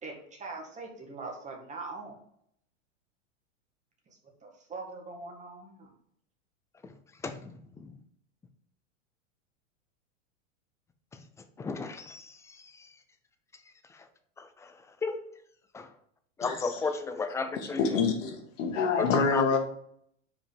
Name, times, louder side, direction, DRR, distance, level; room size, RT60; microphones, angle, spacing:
voice 1, 0.0-2.2 4.1-5.9, right 3 dB, 20° right, 1.9 m, -42 dB
voice 2, 7.2-7.9 11.6-12.9 13.9-14.1 14.4-15.2 15.7-15.9 16.4-18.0 19.0-19.6, left 4 dB, 10° left, 0.3 m, -35 dB
voice 3, 17.8-19.6, left 5 dB, 75° left, 1.5 m, -26 dB
5.1 x 4.8 x 5.1 m
hypercardioid pair, 125°, 38 cm